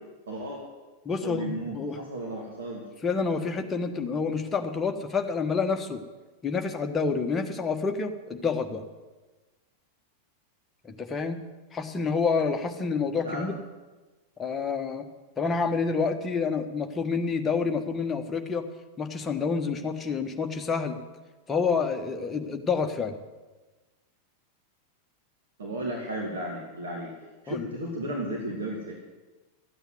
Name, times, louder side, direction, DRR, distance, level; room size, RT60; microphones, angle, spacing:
voice 1, 0.3-0.6 1.2-2.8 13.2-13.5 25.6-27.1 27.4-29.0, right 1 dB, 65° right, -1 dB, 2.6 m, -34 dB
voice 2, 1.0-2.0 3.0-6.0 6.4-8.8 11.0-11.4 11.7-13.6 14.4-15.0 15.4-18.6 19.0-21.0 21.5-23.2 27.5-27.7, left 5 dB, 20° left, 4 dB, 1.4 m, -28 dB
13.5 x 8.8 x 7.8 m, 1.2 s
figure-of-eight pair, 90°, 0 cm